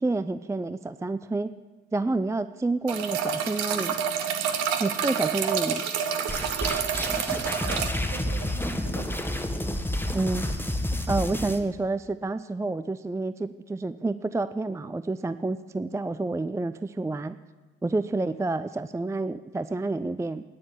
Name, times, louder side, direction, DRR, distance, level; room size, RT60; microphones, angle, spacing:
voice 1, 0.0-1.5 1.9-4.0 4.8-5.8 10.1-10.5 11.1-17.4 17.8-20.4, right 2 dB, 10° right, 13 dB, 0.5 m, -29 dB
sound 1, 2.9-7.9, right 8 dB, 65° right, 1.2 m, -28 dB
sound 2, 6.3-11.6, left 1 dB, 5° left, 1.6 m, -30 dB
voice 2, 7.3-9.2 9.5-9.9, right 5 dB, 50° right, 3 dB, 2.3 m, -43 dB
12.5 x 9.8 x 9.9 m, 1.3 s
figure-of-eight pair, 40°, 29 cm